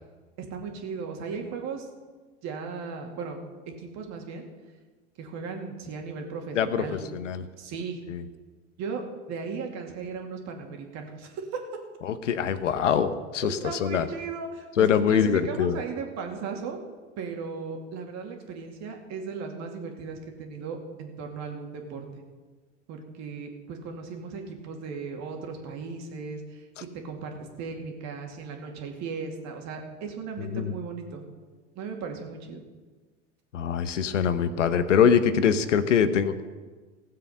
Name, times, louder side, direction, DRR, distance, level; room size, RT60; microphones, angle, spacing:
voice 1, 0.4-1.9 2.4-3.4 3.7-4.5 5.2-7.1 7.6-8.0 8.8-9.0 9.3-11.6 13.4-16.8 17.2-22.1 22.9-31.2 31.8-32.6, right 5 dB, 45° right, 3 dB, 2.5 m, -36 dB
voice 2, 6.5-7.4 8.1-8.2 12.0-14.1 14.8-15.8 30.4-30.7 33.5-36.4, left 7 dB, 85° left, 11 dB, 0.9 m, -24 dB
16.0 x 7.6 x 5.6 m, 1.4 s
hypercardioid pair, 90°, 36 cm